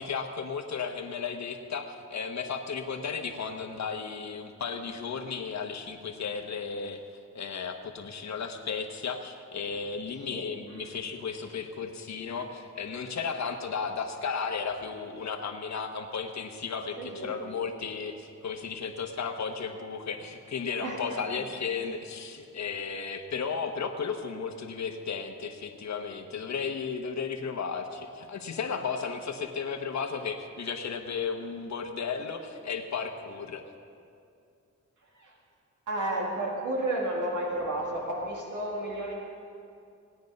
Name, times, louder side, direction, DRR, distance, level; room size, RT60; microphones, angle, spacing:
voice 1, 0.0-7.0 7.3-33.6, left 5 dB, 65° left, 4 dB, 1.2 m, -34 dB
voice 2, 17.0-17.3 20.8-21.2 35.2-35.3 35.9-39.1, right 1 dB, 85° right, -2 dB, 1.9 m, -32 dB
18.0 x 9.4 x 5.3 m, 2.4 s
cardioid pair, 85°, 29 cm